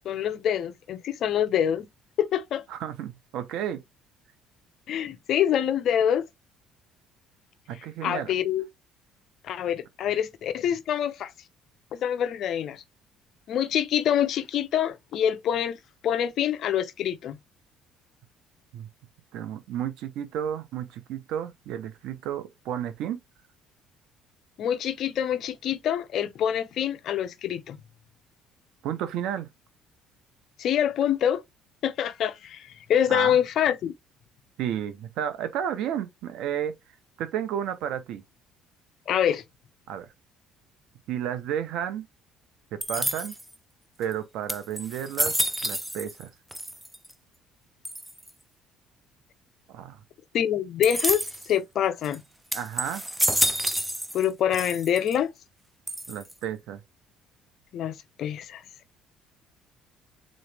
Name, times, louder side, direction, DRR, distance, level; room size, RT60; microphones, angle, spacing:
voice 1, 0.0-1.9 2.2-2.6 4.9-6.2 8.0-8.6 9.4-11.3 11.9-12.8 13.5-15.8 16.0-17.4 24.6-27.8 30.6-31.4 31.8-33.9 39.1-39.4 50.3-51.2 51.5-52.2 54.1-55.3 57.7-58.6, left 9 dB, 55° left, 0.6 m, -25 dB
voice 2, 2.7-3.8 7.7-8.3 18.7-18.9 19.3-23.2 28.8-29.5 33.1-33.4 34.6-36.7 37.2-38.2 39.9-40.1 41.1-42.1 42.7-43.4 44.0-45.3 45.6-46.3 49.7-50.0 52.5-53.0 56.1-56.8, right 10 dB, 70° right, 0.8 m, -32 dB
sound 1, 42.8-43.5 44.1-44.2 44.5-46.2 46.5-47.1 47.8-48.3 50.8-51.5 52.0-52.2 52.5-54.3 54.5-55.2 55.9-56.4, right 1 dB, 5° right, 0.5 m, -29 dB
3.8 x 3.1 x 3.4 m
cardioid pair, 120°, 0 cm